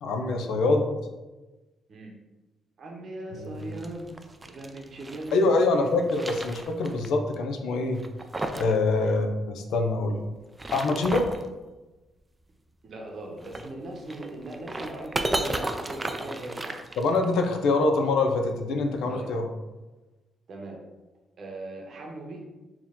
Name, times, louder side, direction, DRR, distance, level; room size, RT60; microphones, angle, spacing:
voice 1, 0.0-0.9 3.4-3.7 5.3-8.0 8.6-10.2 10.7-11.3 17.0-19.5, left 3 dB, 85° left, 4 dB, 0.5 m, -25 dB
voice 2, 2.8-4.1 4.4-6.0 9.0-9.2 12.8-16.9 19.1-19.3 20.5-20.8 21.4-22.4, right 2 dB, 45° right, 1 dB, 0.8 m, -39 dB
sound 1, 3.6-5.4 5.8-7.1 7.3-7.4 7.9-8.8 9.0-9.1 10.4-11.5 13.4-17.5, right 2 dB, 15° right, 0.3 m, -34 dB
4.4 x 2.9 x 3.6 m, 1.1 s
cardioid pair, 145°, 0 cm